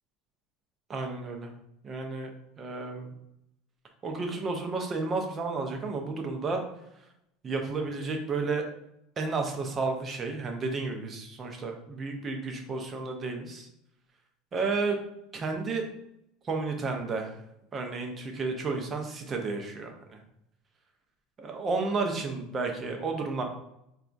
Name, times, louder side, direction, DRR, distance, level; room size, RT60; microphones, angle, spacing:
voice 1, 0.9-1.5 1.8-2.3 2.6-3.1 4.0-6.6 7.4-8.6 9.2-13.7 14.5-15.0 15.3-15.9 16.4-17.4 17.7-20.2 21.4-23.4, right 3 dB, 25° right, 3 dB, 0.6 m, -32 dB
4.0 x 2.3 x 2.5 m, 0.79 s
supercardioid pair, 140°, 0 cm